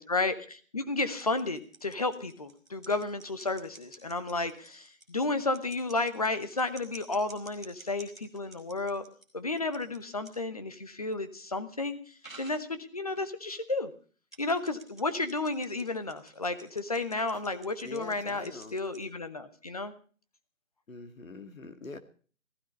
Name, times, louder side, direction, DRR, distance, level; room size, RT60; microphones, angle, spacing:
voice 1, 0.0-9.0 9.3-12.0 12.4-13.9 14.4-19.9, left 3 dB, 30° left, 11 dB, 1.0 m, -32 dB
sound 1, 1.0-9.2 9.6-10.0 10.2-10.3 11.1-11.2 12.2-12.6 13.1-13.2 13.5-13.7 14.3-19.0, right 3 dB, 5° left, 1.0 m, -50 dB
voice 2, 17.8-18.8 20.9-22.0, left 3 dB, 80° left, 9 dB, 2.2 m, -44 dB
15.0 x 14.5 x 5.3 m, 0.41 s
hypercardioid pair, 175°, 40 cm